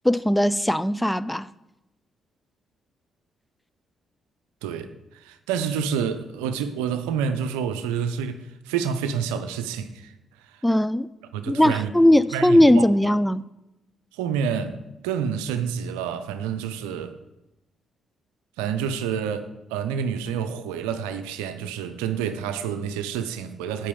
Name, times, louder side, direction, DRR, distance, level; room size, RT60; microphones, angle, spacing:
voice 1, 0.0-1.5 10.6-11.1 11.5-13.4, left 1 dB, 5° left, 0.4 m, -19 dB
voice 2, 4.6-4.9 5.2-10.1 11.3-11.9 12.3-12.8 14.1-14.8 15.0-17.1 18.6-23.9, right 7 dB, 85° right, 0.6 m, -28 dB
8.4 x 5.7 x 6.9 m
hypercardioid pair, 45°, 0 cm